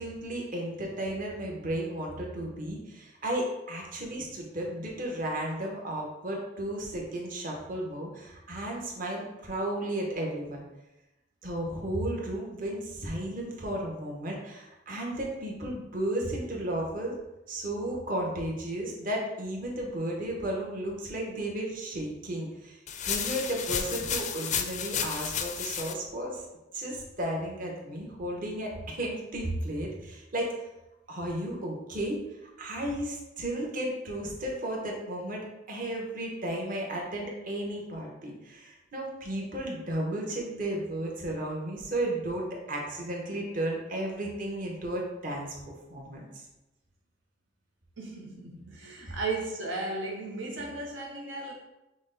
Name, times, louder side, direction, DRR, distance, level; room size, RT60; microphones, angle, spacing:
voice 1, 0.0-10.6 11.4-17.1 17.5-22.8 23.1-26.4 26.7-30.5 31.1-32.2 32.6-46.4 49.1-49.2, right 1 dB, 50° right, -1 dB, 0.9 m, -34 dB
sound 1, 22.9-25.9, left 7 dB, 40° left, 0.4 m, -32 dB
voice 2, 48.0-51.5, right 3 dB, 90° right, -1 dB, 0.8 m, -35 dB
6.1 x 2.1 x 3.8 m, 0.96 s
head